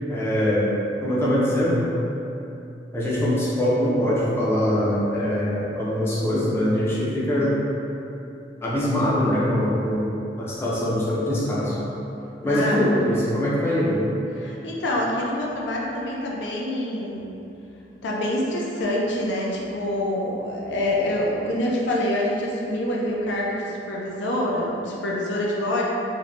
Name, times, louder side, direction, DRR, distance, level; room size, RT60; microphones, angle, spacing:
voice 1, 0.1-0.7 1.0-1.9 2.9-7.6 8.6-10.1 10.4-11.8 12.4-14.1, left 1 dB, 15° left, -7 dB, 0.4 m, -22 dB
voice 2, 12.4-12.8 14.3-17.3 18.0-25.8, left 1 dB, 85° left, -3 dB, 0.4 m, -26 dB
3.1 x 2.1 x 2.4 m, 2.7 s
head